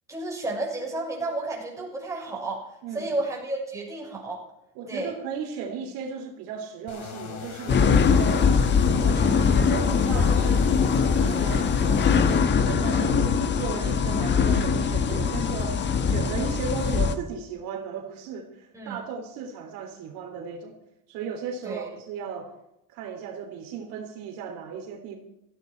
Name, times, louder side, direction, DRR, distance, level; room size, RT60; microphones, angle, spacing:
voice 1, 0.1-4.4 4.9-5.1 13.8-13.9 18.7-19.0 21.6-21.9, right 2 dB, 10° right, -3 dB, 6.4 m, -32 dB
voice 2, 2.8-3.1 4.7-8.5 8.9-20.8 21.1-22.5 22.9-25.2, right 6 dB, 75° right, 3 dB, 3.4 m, -36 dB
sound 1, 6.9-12.4, left 6 dB, 55° left, 3.9 m, -39 dB
sound 2, 7.7-17.2, left 6 dB, 30° left, 1.3 m, -22 dB
17.0 x 15.0 x 4.6 m, 0.85 s
cardioid pair, 145°, 34 cm